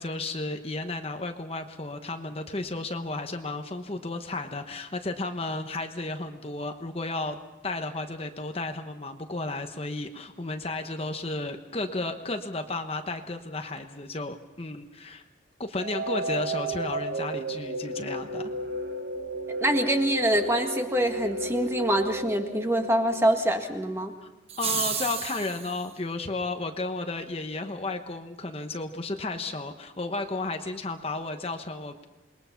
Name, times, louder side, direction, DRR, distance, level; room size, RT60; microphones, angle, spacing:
voice 1, 0.0-7.4 7.6-15.2 15.6-18.4 24.2-24.3 24.6-32.1, left 2 dB, 30° left, 6 dB, 1.0 m, -33 dB
sound 1, 15.8-23.7, right 1 dB, 55° right, 1.0 m, -33 dB
voice 2, 19.5-24.1, right 1 dB, 15° right, 4 dB, 1.7 m, -25 dB
sound 2, 24.5-25.8, right 7 dB, 30° right, 1.2 m, -31 dB
27.5 x 21.0 x 5.8 m, 1.0 s
head